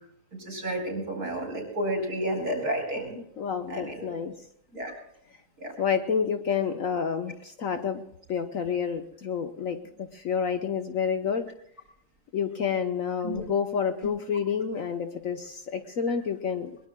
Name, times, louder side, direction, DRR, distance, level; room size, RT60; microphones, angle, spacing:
voice 1, 0.4-3.2 3.7-4.1 4.7-4.9 5.6-5.7 13.2-13.4, right 1 dB, 60° right, 3 dB, 4.8 m, -31 dB
voice 2, 3.4-4.4 5.8-11.5 12.3-16.8, left 7 dB, 60° left, 7 dB, 1.2 m, -29 dB
22.0 x 21.5 x 2.2 m, 0.74 s
omnidirectional pair, 1.8 m